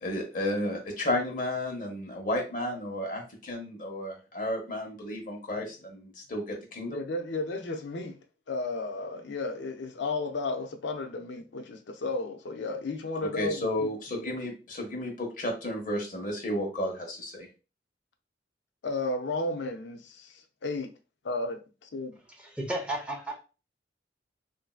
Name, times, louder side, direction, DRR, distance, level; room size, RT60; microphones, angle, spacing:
voice 1, 0.0-7.0 13.4-17.5, left 1 dB, 45° left, 0.9 m, -32 dB
voice 2, 6.9-8.2 8.5-14.3 18.8-20.9 21.2-22.1, left 2 dB, 75° left, 0.5 m, -33 dB
voice 3, 22.4-23.4, right 1 dB, 5° right, 0.6 m, -33 dB
3.1 x 2.6 x 2.3 m
head